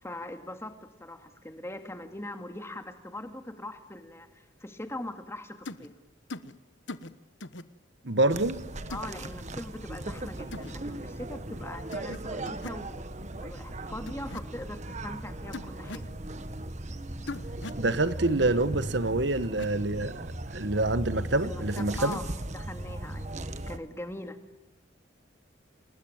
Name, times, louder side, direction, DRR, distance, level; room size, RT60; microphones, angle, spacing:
voice 1, 0.0-5.9 8.9-13.0 13.3-16.1 21.2-22.2 22.5-23.3 23.7-24.4, left 1 dB, 15° left, 2.4 m, -41 dB
sound 1, 5.7-5.9 6.3-6.5 6.9-7.1 7.4-7.6 8.9-9.1 10.5-10.7 11.9-12.2 12.5-12.8 14.1-14.4 15.5-16.1 17.3-17.8 19.4-19.7 21.8-22.3, left 2 dB, 70° left, 1.3 m, -40 dB
voice 2, 8.0-8.6 17.8-22.2, right 2 dB, 65° right, 1.3 m, -27 dB
sound 2, 8.3-23.8, right 1 dB, 40° right, 1.4 m, -38 dB
28.0 x 21.0 x 9.0 m
head